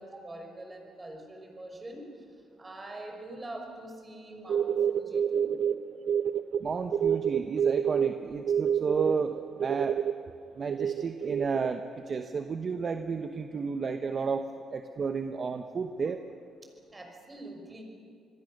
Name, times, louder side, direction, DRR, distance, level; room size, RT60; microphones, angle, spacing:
voice 1, 0.0-2.2 2.6-5.6 16.9-17.8, right 1 dB, 20° right, 2 dB, 5.8 m, -44 dB
sound 1, 4.5-6.6 6.9-8.1 8.5-10.1 10.7-11.7, right 8 dB, 60° right, 0.7 m, -27 dB
voice 2, 6.6-10.0 10.6-16.2, right 5 dB, 45° right, 7 dB, 1.1 m, -32 dB
26.5 x 22.0 x 6.7 m, 2.3 s
cardioid pair, 90°, 0 cm